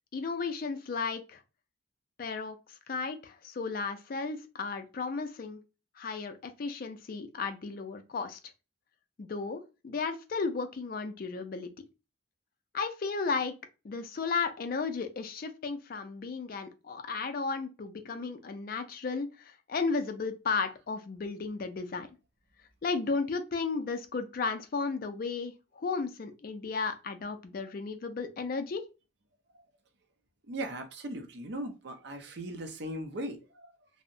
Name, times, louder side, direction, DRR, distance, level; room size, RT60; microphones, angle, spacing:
voice 1, 0.1-1.4 2.2-5.6 6.0-8.4 9.2-11.7 12.7-13.5 13.8-22.1 22.8-28.8, left 4 dB, 45° left, 0.4 m, -34 dB
voice 2, 30.4-33.9, right 1 dB, 55° right, 0.5 m, -39 dB
2.6 x 2.0 x 2.5 m
head